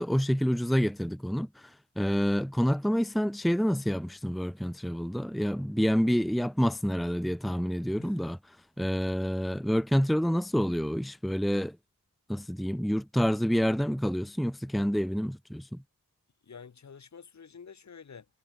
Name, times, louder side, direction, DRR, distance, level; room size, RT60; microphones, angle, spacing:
voice 1, 0.0-1.7 2.0-8.4 8.8-11.8 12.3-15.8, equal, ahead, 1.0 m, -28 dB
voice 2, 8.0-8.3 16.4-18.3, left 6 dB, 55° left, 2.4 m, -49 dB
wide cardioid pair, 90°, 34 cm